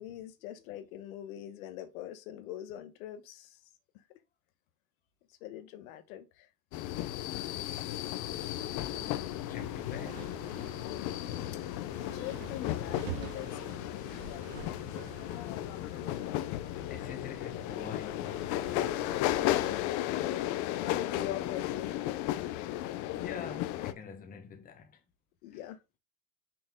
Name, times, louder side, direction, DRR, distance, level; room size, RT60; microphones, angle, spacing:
voice 1, 0.0-3.6 5.4-6.5 12.1-13.8 19.4-20.4 20.8-22.0 25.4-25.8, left 12 dB, 75° left, 1.1 m, -42 dB
sound 1, 6.7-23.9, left 14 dB, 45° left, 0.6 m, -35 dB
sound 2, 8.2-19.9, right 5 dB, 70° right, 2.2 m, -48 dB
voice 2, 8.6-10.5 16.8-19.3 22.5-25.0 25.5-25.7, left 6 dB, 20° left, 1.2 m, -47 dB
sound 3, 13.3-22.7, right 5 dB, 30° right, 1.6 m, -58 dB
5.9 x 4.3 x 3.7 m
supercardioid pair, 155°, 42 cm